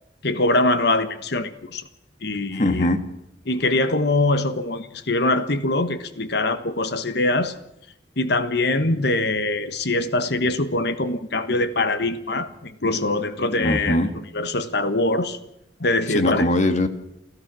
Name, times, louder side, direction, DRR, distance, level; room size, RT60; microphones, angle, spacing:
voice 1, 0.2-1.8 2.2-2.9 3.5-7.5 8.2-14.0 14.3-15.4 15.8-16.5, left 2 dB, 65° left, 11 dB, 1.3 m, -23 dB
voice 2, 2.5-3.0 13.6-14.1 16.1-16.9, left 1 dB, 40° left, 9 dB, 1.7 m, -21 dB
28.5 x 15.0 x 6.2 m, 0.82 s
head